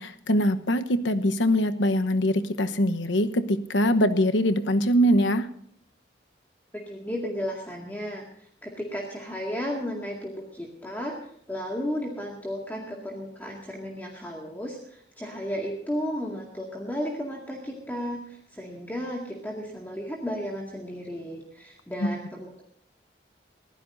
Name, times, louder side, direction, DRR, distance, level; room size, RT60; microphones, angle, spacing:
voice 1, 0.0-5.5 22.0-22.1, equal, 85° left, 9 dB, 1.1 m, -23 dB
voice 2, 6.7-22.6, equal, 10° left, -2 dB, 2.1 m, -34 dB
22.5 x 15.5 x 2.7 m, 0.67 s
head